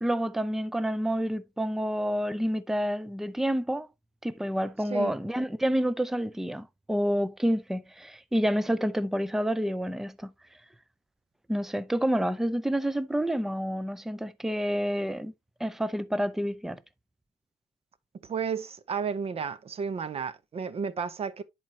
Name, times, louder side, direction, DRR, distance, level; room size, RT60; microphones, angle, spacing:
voice 1, 0.0-3.9 4.2-10.3 11.5-15.3 15.6-16.8, equal, ahead, 0.5 m, -28 dB
voice 2, 18.3-21.4, right 6 dB, 35° right, 0.7 m, -32 dB
10.5 x 4.6 x 2.8 m
cardioid pair, 110°, 17 cm